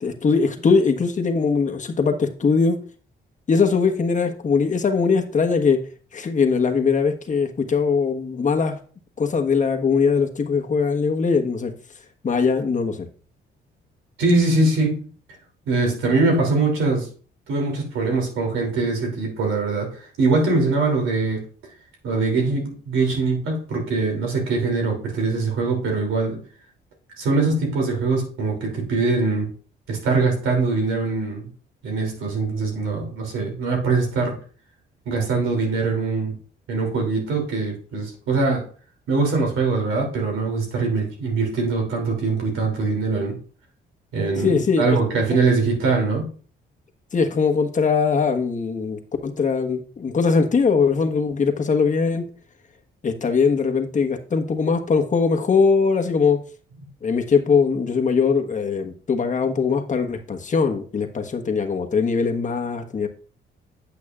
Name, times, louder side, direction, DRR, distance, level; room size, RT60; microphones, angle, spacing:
voice 1, 0.0-2.8 3.5-5.8 6.1-8.8 9.2-11.7 12.2-13.1 44.4-45.0 47.1-52.2 53.0-56.4 57.0-63.1, left 5 dB, 40° left, 5 dB, 1.2 m, -21 dB
voice 2, 14.2-15.0 15.7-17.1 17.5-21.5 22.0-26.4 27.2-29.5 29.9-31.5 31.8-34.4 35.1-36.3 36.7-38.7 39.1-43.4 44.1-46.3, right 3 dB, 85° right, 1 dB, 2.9 m, -22 dB
8.5 x 8.3 x 2.4 m, 0.40 s
cardioid pair, 90°, 20 cm